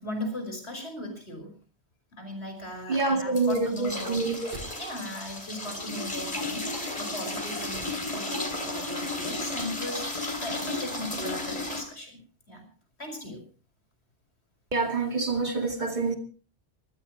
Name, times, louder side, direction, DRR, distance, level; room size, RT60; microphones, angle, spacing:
voice 1, 0.0-1.6 2.1-4.3 4.8-12.2 12.5-12.7 13.0-13.4, left 1 dB, 80° left, 6.0 m, -38 dB
voice 2, 2.9-4.6 14.7-16.1, right 3 dB, 45° right, 2.5 m, -27 dB
sound 1, 3.3-11.8, left 2 dB, 35° left, 3.4 m, -34 dB
sound 2, 4.5-5.3 7.7-8.6 8.9-9.0, right 1 dB, 75° right, 7.0 m, -47 dB
23.5 x 16.0 x 3.1 m
omnidirectional pair, 1.1 m